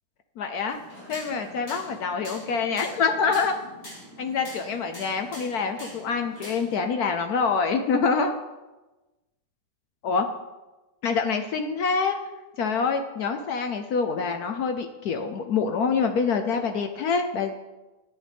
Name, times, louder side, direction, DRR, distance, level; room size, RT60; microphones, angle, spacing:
voice 1, 0.4-0.8 1.1-3.5 4.2-8.4 10.0-10.3 11.0-12.2 12.6-17.5, left 5 dB, 85° left, 6 dB, 0.8 m, -26 dB
sound 1, 0.7-6.8, equal, 45° left, 5.1 m, -44 dB
14.0 x 9.2 x 3.4 m, 1.1 s
omnidirectional pair, 2.4 m